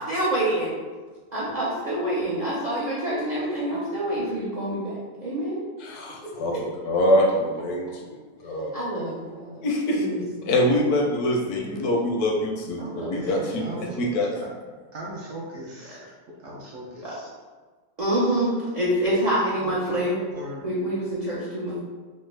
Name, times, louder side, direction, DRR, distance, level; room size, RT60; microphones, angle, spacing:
voice 1, 0.1-0.8 1.3-5.6 8.7-9.6 10.0-10.5 12.8-13.7 17.0-17.1 18.0-20.2 20.6-21.8, right 1 dB, 90° right, -9 dB, 0.3 m, -27 dB
voice 2, 5.8-6.5 6.8-8.2 8.4-8.7 9.6-10.1 10.5-13.6 14.0-14.3, left 1 dB, 80° left, 1 dB, 1.1 m, -24 dB
voice 3, 13.1-14.2 14.9-16.1 16.4-17.3 19.6-20.0 20.3-20.7, right 1 dB, 65° right, -4 dB, 0.7 m, -38 dB
3.3 x 2.0 x 3.2 m, 1.4 s
omnidirectional pair, 1.6 m